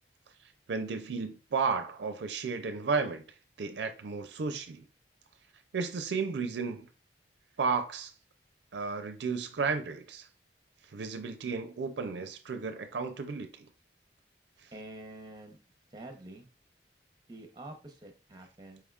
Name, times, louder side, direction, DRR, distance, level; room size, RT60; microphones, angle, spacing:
voice 1, 0.7-3.2 3.6-4.8 5.7-6.9 7.6-8.1 8.7-10.3 10.9-13.7, right 5 dB, 75° right, 0.4 m, -33 dB
voice 2, 14.7-15.6 15.9-16.4 17.3-18.8, right 1 dB, 25° right, 0.7 m, -47 dB
4.6 x 3.5 x 2.3 m
head